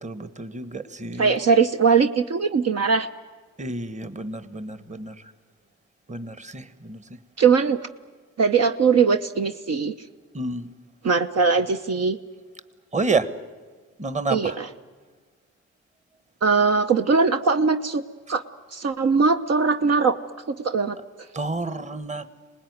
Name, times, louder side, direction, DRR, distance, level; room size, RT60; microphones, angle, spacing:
voice 1, 0.0-1.3 3.6-5.1 6.1-7.0 10.3-10.7 12.9-13.3 14.0-14.6 21.3-22.2, right 3 dB, 25° right, 13 dB, 1.3 m, -29 dB
voice 2, 1.2-3.1 7.4-7.8 8.4-9.9 11.0-12.2 14.3-14.7 16.4-18.0 18.3-18.4 18.7-20.2 20.5-21.0, right 5 dB, 55° right, 6 dB, 0.9 m, -20 dB
25.5 x 19.5 x 9.5 m, 1.4 s
cardioid pair, 90°, 30 cm